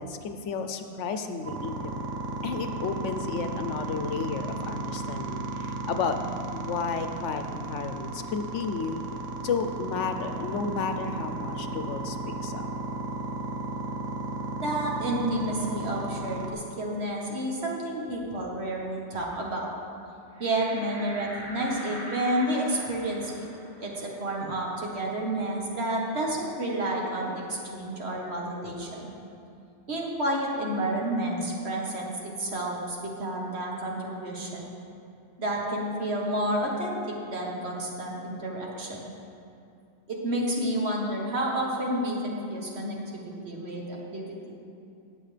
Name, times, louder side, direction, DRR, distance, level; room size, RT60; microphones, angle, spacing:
voice 1, 0.0-2.1 2.4-6.2 6.5-9.0 9.4-12.6, left 5 dB, 80° left, 7 dB, 1.0 m, -32 dB
sound 1, 1.4-16.5, right 2 dB, 85° right, 1.1 m, -34 dB
voice 2, 14.6-19.7 20.4-23.5 23.8-29.1 29.9-34.7 35.4-37.0 37.3-39.0 40.1-44.5, right 1 dB, 60° right, -2 dB, 1.7 m, -30 dB
sound 2, 20.3-25.5 25.9-26.0 26.3-28.0, equal, 5° right, 2.6 m, -44 dB
18.0 x 7.0 x 3.4 m, 2.5 s
omnidirectional pair, 1.3 m